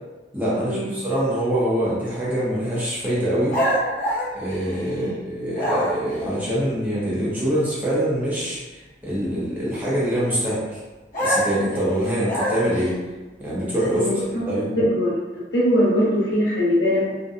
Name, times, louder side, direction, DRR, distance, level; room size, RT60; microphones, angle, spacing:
voice 1, 0.3-3.6 4.3-10.8 11.2-13.0 13.4-14.2 14.5-14.7, right 1 dB, 10° right, -9 dB, 0.7 m, -24 dB
sound 1, 3.5-5.1 5.5-6.2 11.1-12.9, equal, 50° left, 0.6 m, -25 dB
voice 2, 13.9-14.4 14.8-15.1 15.5-17.2, equal, 75° left, -7 dB, 0.9 m, -21 dB
2.6 x 2.2 x 2.4 m, 1.2 s
head